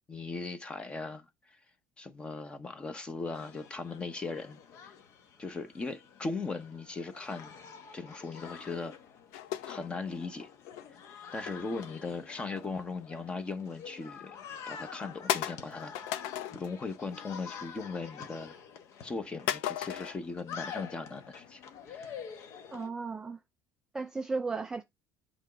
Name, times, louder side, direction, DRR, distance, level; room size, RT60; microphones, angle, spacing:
voice 1, 0.1-1.6 2.0-4.9 5.4-7.5 7.9-9.0 9.7-10.5 11.3-14.4 14.7-15.9 16.5-18.5 19.0-21.6 21.9-22.2, left 3 dB, 15° left, 0.9 m, -38 dB
sound 1, 3.3-22.9, left 7 dB, 50° left, 1.0 m, -48 dB
sound 2, 9.3-10.9 11.5-12.7 13.1-13.4 13.9-14.0 14.5-14.6 15.3-16.8 17.1-17.5 17.8-18.5 19.5-20.2, left 11 dB, 85° left, 0.7 m, -36 dB
voice 2, 22.7-23.4 23.9-24.8, right 4 dB, 10° right, 0.4 m, -35 dB
8.3 x 3.1 x 5.0 m
cardioid pair, 160°, 6 cm